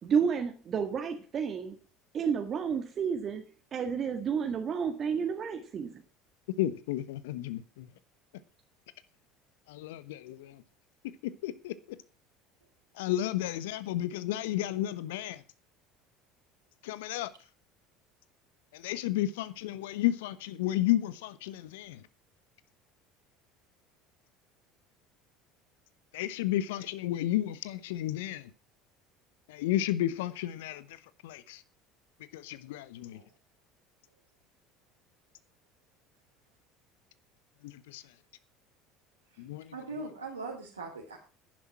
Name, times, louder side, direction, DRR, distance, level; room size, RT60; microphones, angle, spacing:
voice 1, 0.0-1.8 2.1-3.4 3.7-6.0, right 6 dB, 40° right, 1.7 m, -31 dB
voice 2, 6.6-7.9 9.7-10.5 11.4-11.7 13.0-15.4 16.8-17.3 18.8-22.0 26.1-28.4 29.5-30.8 31.2-31.6 32.3-33.2 37.9-38.0 39.4-39.6, left 13 dB, 70° left, 1.0 m, -32 dB
voice 3, 39.7-41.2, right 3 dB, 85° right, 2.9 m, -40 dB
11.0 x 10.5 x 5.9 m
figure-of-eight pair, 65°, 0 cm